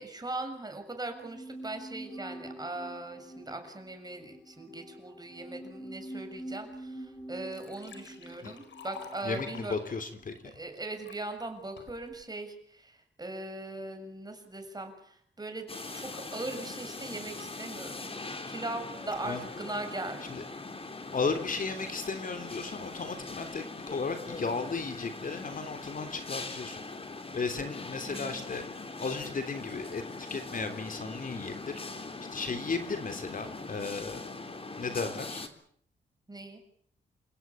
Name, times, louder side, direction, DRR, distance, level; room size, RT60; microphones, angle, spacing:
voice 1, 0.0-9.8 10.5-15.7 15.9-18.1 18.5-20.4 28.0-28.4 36.3-36.6, right 2 dB, 20° right, 6 dB, 7.0 m, -40 dB
sound 1, 1.1-10.4 10.7-10.8, right 1 dB, 15° left, 6.2 m, -46 dB
Liquid, 6.7-6.8 7.2-11.2 11.8-12.2, left 5 dB, 80° left, 4.9 m, -50 dB
voice 2, 9.2-10.5 19.2-19.4 20.3-20.4 21.1-26.8 27.3-28.6 29.0-30.0 30.3-31.7 32.3-34.3 34.8-35.4, left 4 dB, 50° left, 8 dB, 3.4 m, -35 dB
sound 2, 15.7-35.5, left 3 dB, 30° left, 3.5 m, -41 dB
29.0 x 17.0 x 8.6 m, 0.64 s
wide cardioid pair, 105°, 18 cm